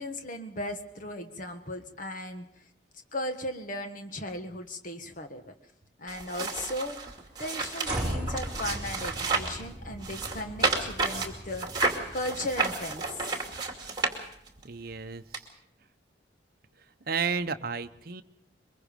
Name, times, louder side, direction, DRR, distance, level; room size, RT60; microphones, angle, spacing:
voice 1, 0.0-2.5 3.1-5.4 6.0-7.1 7.4-13.3, left 1 dB, 45° left, 6 dB, 1.5 m, -37 dB
sound 1, 6.1-9.6 10.0-14.6 15.3-15.4, right 3 dB, 25° right, 2.4 m, -31 dB
sound 2, 7.8-14.1, right 1 dB, 5° right, 4.1 m, -39 dB
voice 2, 14.6-15.2 17.1-18.2, right 5 dB, 50° right, 8 dB, 0.8 m, -32 dB
23.0 x 22.0 x 5.2 m, 0.72 s
head